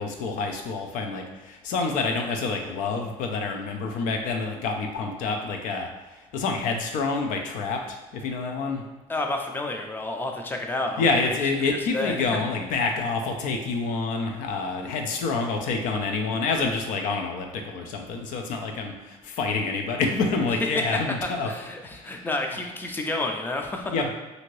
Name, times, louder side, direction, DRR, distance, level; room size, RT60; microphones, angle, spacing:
voice 1, 0.0-8.8 11.0-21.5 22.0-22.2 23.9-24.1, left 4 dB, 75° left, 3 dB, 0.5 m, -27 dB
voice 2, 9.1-11.4 11.6-12.2 20.7-20.8 21.2-23.9, left 2 dB, 15° left, 3 dB, 0.4 m, -30 dB
2.7 x 2.6 x 3.1 m, 1.2 s
cardioid pair, 130°, 13 cm